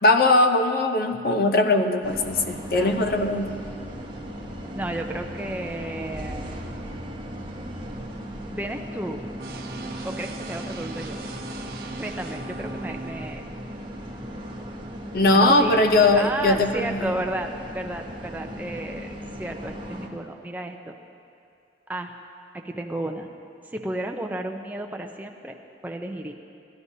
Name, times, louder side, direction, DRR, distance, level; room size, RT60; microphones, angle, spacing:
voice 1, 0.0-3.5 15.1-17.1, left 2 dB, 55° left, 6 dB, 0.6 m, -20 dB
sound 1, 2.0-20.1, equal, 25° right, 0.9 m, -37 dB
voice 2, 2.7-3.1 4.7-6.5 8.5-9.2 10.0-11.2 11.9-13.4 15.3-15.8 16.2-17.5 17.7-21.0 21.9-22.1 22.6-23.3 23.6-25.6 25.8-26.3, right 1 dB, 10° right, 3 dB, 0.5 m, -32 dB
sound 2, 9.4-13.4, right 2 dB, 60° right, 0.7 m, -38 dB
16.5 x 11.0 x 2.7 m, 2.5 s
head